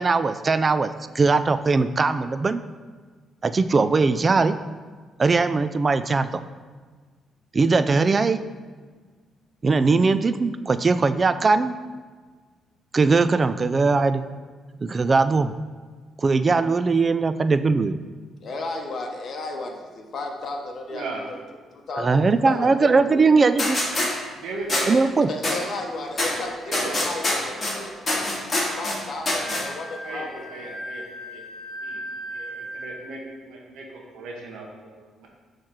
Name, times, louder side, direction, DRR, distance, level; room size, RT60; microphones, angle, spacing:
voice 1, 0.0-2.6 3.4-4.6 5.2-6.3 7.5-8.4 9.6-11.8 12.9-14.3 14.8-15.5 16.2-18.0 21.9-23.8 24.9-25.3, right 4 dB, 35° right, 13 dB, 0.3 m, -20 dB
voice 2, 18.4-21.3 21.7-23.2 25.3-30.5, left 2 dB, 55° left, 2 dB, 1.0 m, -34 dB
voice 3, 20.9-21.2 24.4-24.9 26.7-27.0 30.0-31.4 31.8-32.0 32.3-35.3, right 3 dB, 85° right, -1 dB, 1.0 m, -37 dB
sound 1, 23.6-24.1 24.7-24.8 25.4-25.5 26.2-26.3 26.7-27.7 28.1-29.0 29.3-29.6, left 2 dB, 30° left, 2.0 m, -24 dB
Wind instrument woodwind instrument, 29.3-33.1, equal, 5° left, 1.4 m, -37 dB
6.4 x 3.1 x 5.7 m, 1.5 s
cardioid pair, 90°, 0 cm